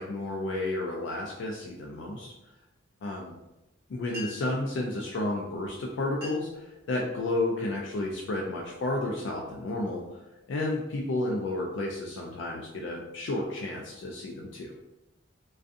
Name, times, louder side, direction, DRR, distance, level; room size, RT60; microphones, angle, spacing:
voice 1, 0.0-2.3 3.0-3.3 3.9-10.2 10.5-14.7, left 2 dB, 60° left, -1 dB, 0.3 m, -32 dB
sound 1, 4.0-4.7 5.5-5.7 6.0-6.6 7.1-7.5 8.1-8.4 8.9-10.1, left 2 dB, 50° right, 0.9 m, -45 dB
2.4 x 2.3 x 2.5 m, 0.97 s
head